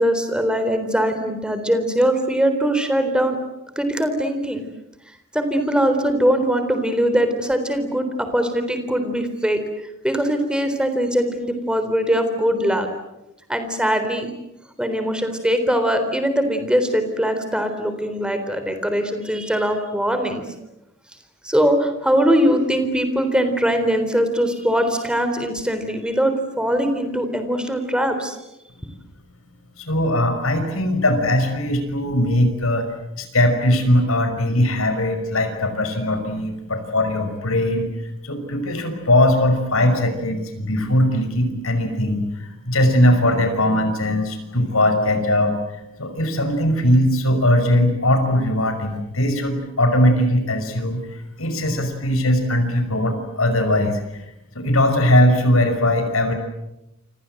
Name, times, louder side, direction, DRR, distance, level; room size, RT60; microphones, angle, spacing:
voice 1, 0.0-3.4 3.8-4.6 5.3-9.6 10.0-12.9 13.5-14.3 14.8-20.4 21.4-28.4, equal, 5° right, 8 dB, 3.8 m, -21 dB
voice 2, 29.8-32.9 33.2-37.9 38.2-45.5 46.0-54.2 54.5-56.3, left 1 dB, 90° left, 8 dB, 5.8 m, -20 dB
29.5 x 25.5 x 7.9 m, 0.90 s
head